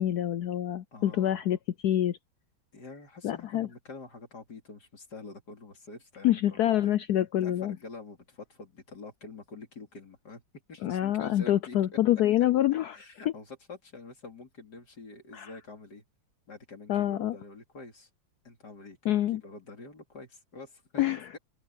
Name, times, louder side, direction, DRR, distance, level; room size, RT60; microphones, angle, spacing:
voice 1, 0.0-1.6 1.8-2.2 3.2-3.7 6.2-7.8 10.8-13.0 15.3-15.5 16.9-17.3 19.0-19.4 21.0-21.3, left 12 dB, 70° left, 0.9 m, -26 dB
voice 2, 0.9-1.4 2.7-6.8 7.4-10.4 10.7-11.8 12.9-16.0 16.5-18.1 18.4-21.0 21.3-21.4, left 3 dB, 55° left, 3.9 m, -46 dB
omnidirectional pair, 2.1 m